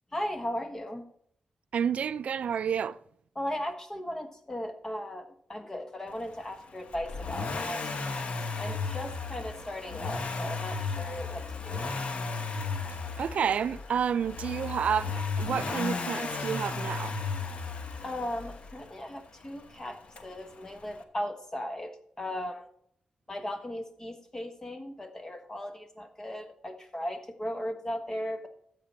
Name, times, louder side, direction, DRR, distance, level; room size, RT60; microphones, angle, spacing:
voice 1, 0.1-1.1 3.3-8.2 8.6-11.9 18.0-22.7 23.3-28.5, left 1 dB, 25° left, 1.4 m, -37 dB
voice 2, 1.7-3.0 13.2-17.2, right 7 dB, 75° right, 0.3 m, -30 dB
Accelerating revving vroom, 6.9-18.9 20.2-20.3, left 4 dB, 65° left, 1.1 m, -34 dB
13.0 x 7.7 x 4.3 m
cardioid pair, 95°, 2 cm